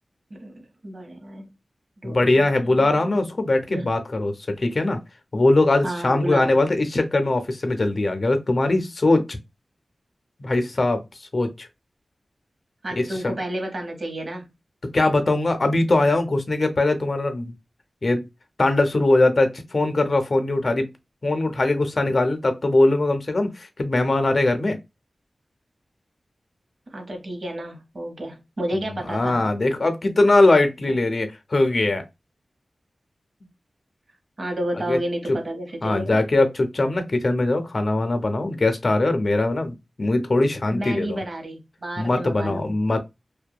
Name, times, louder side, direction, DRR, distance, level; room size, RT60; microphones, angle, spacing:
voice 1, 0.3-1.4 2.0-3.0 3.7-3.9 5.8-6.6 12.8-14.5 22.1-22.2 26.9-29.5 30.9-31.0 34.4-36.2 40.7-42.6, right 1 dB, 60° right, 0.9 m, -31 dB
voice 2, 2.0-5.0 5.3-9.4 10.4-11.0 11.3-11.7 13.0-13.3 14.9-17.5 18.0-18.3 18.6-20.9 21.2-24.8 28.9-32.0 34.8-35.0 35.3-35.4 35.8-41.2 42.0-43.0, left 2 dB, 55° left, 0.5 m, -21 dB
2.7 x 2.2 x 2.2 m
wide cardioid pair, 55°, 0 cm